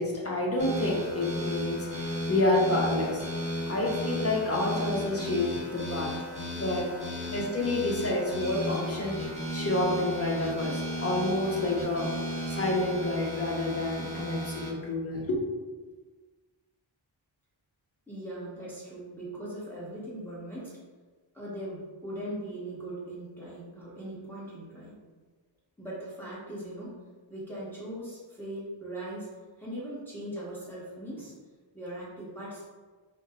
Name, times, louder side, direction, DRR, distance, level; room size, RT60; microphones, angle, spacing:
voice 1, 0.0-3.2 3.7-6.2 6.5-6.9 7.3-9.2 9.5-12.1 12.5-15.4, left 1 dB, 30° left, -2 dB, 0.9 m, -29 dB
sound 1, 0.6-14.7, left 1 dB, 15° right, 1.4 m, -35 dB
voice 2, 18.1-20.8 21.3-25.0 25.8-27.0 27.3-29.3 29.6-31.3 31.7-32.7, right 1 dB, 5° left, -9 dB, 1.4 m, -39 dB
4.5 x 2.2 x 3.6 m, 1.4 s
wide cardioid pair, 70°, 47 cm